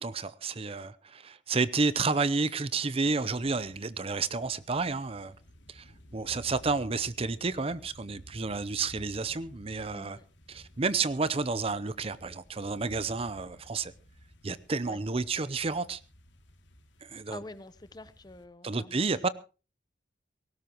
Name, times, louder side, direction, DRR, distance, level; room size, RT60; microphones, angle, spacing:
voice 1, 0.0-5.3 5.7-5.9 6.1-10.2 10.5-13.9 14.4-16.0 17.0-17.4 18.6-19.3, right 4 dB, 30° right, 0.6 m, -30 dB
sound 1, 3.3-18.5, equal, 80° left, 2.6 m, -54 dB
voice 2, 9.9-10.3 14.8-15.0 17.3-19.3, left 2 dB, 20° left, 0.8 m, -47 dB
19.0 x 18.0 x 3.0 m
head